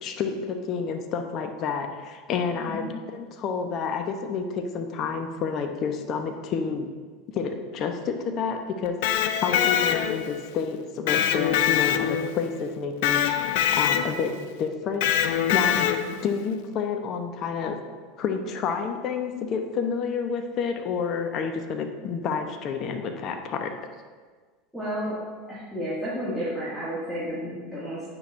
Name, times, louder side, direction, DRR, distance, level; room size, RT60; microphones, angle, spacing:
voice 1, 0.0-6.9 7.3-9.0 9.4-13.2 13.7-15.9 16.2-17.8 18.2-23.7, left 6 dB, 45° left, 5 dB, 0.8 m, -29 dB
Electric guitar, 8.8-10.4 11.1-12.5 13.0-14.3 15.0-16.2, left 10 dB, 65° left, 0.4 m, -24 dB
voice 2, 15.7-16.2 24.7-25.2 25.5-28.0, equal, 5° left, -10 dB, 2.1 m, -32 dB
8.9 x 6.1 x 2.6 m, 1.5 s
hypercardioid pair, 85°, 0 cm